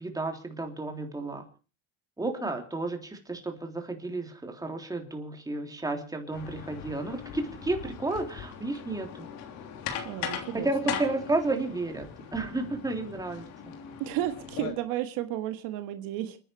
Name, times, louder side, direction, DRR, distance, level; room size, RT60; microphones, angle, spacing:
voice 1, 0.0-1.4 2.2-9.3 10.5-13.5, right 2 dB, 10° right, 3.4 m, -32 dB
sound 1, 6.3-14.7, left 8 dB, 75° left, 3.4 m, -39 dB
voice 2, 10.0-11.0 14.0-16.4, right 13 dB, 75° right, 1.7 m, -33 dB
29.5 x 10.0 x 4.6 m
cardioid pair, 120°, 35 cm